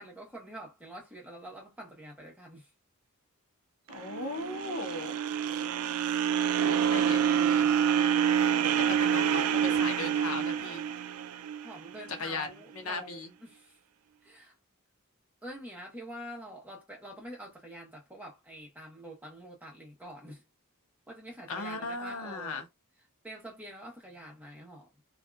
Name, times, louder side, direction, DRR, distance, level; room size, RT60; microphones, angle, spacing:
voice 1, 0.0-2.7 11.6-13.8 14.2-14.5 15.4-20.4 21.1-22.7 23.2-25.0, right 1 dB, 5° right, 1.0 m, -46 dB
voice 2, 3.9-5.2 6.6-7.7 8.9-10.9 12.2-12.5 12.8-13.3 21.5-22.6, left 3 dB, 70° left, 0.7 m, -37 dB
sound 1, 3.9-12.1, right 8 dB, 85° right, 0.3 m, -27 dB
2.6 x 2.4 x 2.2 m
head